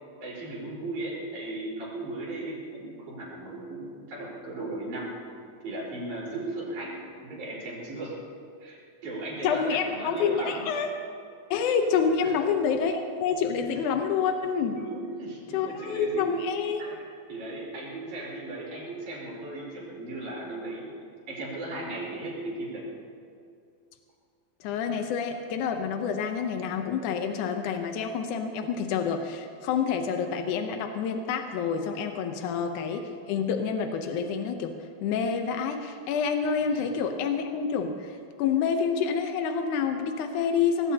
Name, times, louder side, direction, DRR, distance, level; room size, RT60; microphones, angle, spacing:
voice 1, 0.2-5.1 5.6-8.1 8.6-10.7 12.2-12.4 13.7-13.9 14.7-17.0 17.3-20.9 21.3-22.9 32.3-32.5 36.7-36.9 38.6-38.7, right 2 dB, 80° right, -5 dB, 5.8 m, -37 dB
voice 2, 9.4-10.9 11.5-14.8 15.5-17.0 24.6-34.7 35.0-40.9, left 6 dB, 85° left, 5 dB, 2.4 m, -28 dB
24.0 x 19.5 x 2.9 m, 2.4 s
omnidirectional pair, 3.4 m